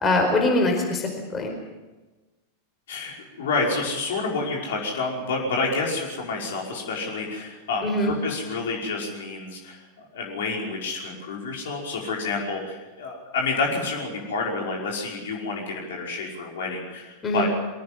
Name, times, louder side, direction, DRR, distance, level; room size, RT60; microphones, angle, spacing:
voice 1, 0.0-1.5 7.8-8.1 17.2-17.5, left 2 dB, 20° left, 2 dB, 4.8 m, -23 dB
voice 2, 2.9-17.5, left 3 dB, 60° left, -1 dB, 5.5 m, -29 dB
23.5 x 18.0 x 7.8 m, 1.2 s
figure-of-eight pair, 90°, 0 cm